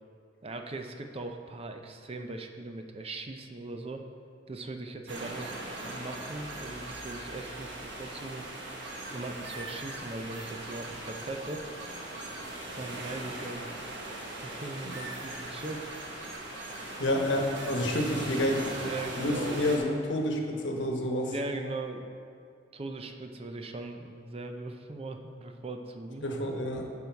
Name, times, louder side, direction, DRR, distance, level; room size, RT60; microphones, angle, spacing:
voice 1, 0.4-4.1 4.5-8.4 9.1-11.6 12.7-13.7 14.2-15.9 18.8-19.6 21.2-22.1 22.7-26.3, right 2 dB, 30° right, 5 dB, 0.5 m, -39 dB
sound 1, 5.1-19.8, right 1 dB, 75° right, 1.3 m, -39 dB
voice 2, 17.0-18.6 19.2-21.3 26.2-26.9, left 1 dB, 75° left, 1 dB, 1.2 m, -29 dB
11.0 x 5.4 x 4.6 m, 2.3 s
head